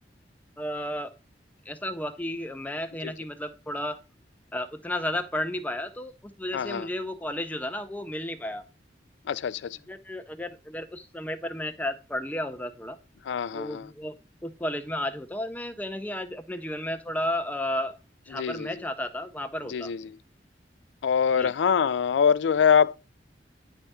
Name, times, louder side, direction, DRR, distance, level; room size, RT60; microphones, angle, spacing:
voice 1, 0.6-1.1 1.7-4.0 4.5-8.6 9.9-13.0 13.5-14.1 14.4-18.0 18.3-19.9 21.4-21.5, left 1 dB, 10° left, 0.5 m, -33 dB
voice 2, 6.5-6.9 9.3-9.8 13.3-13.9 18.3-18.7 19.7-20.2 21.0-23.0, left 7 dB, 85° left, 0.3 m, -24 dB
9.7 x 3.4 x 4.2 m
head